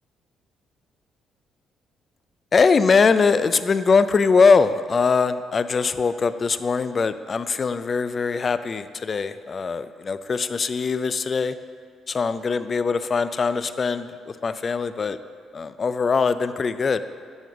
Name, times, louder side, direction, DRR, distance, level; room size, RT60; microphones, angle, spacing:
voice 1, 2.5-11.5 12.1-14.1 14.4-15.2 15.5-17.0, left 5 dB, 40° left, 12 dB, 0.3 m, -21 dB
6.3 x 5.1 x 6.9 m, 2.1 s
cardioid pair, 90°, 0 cm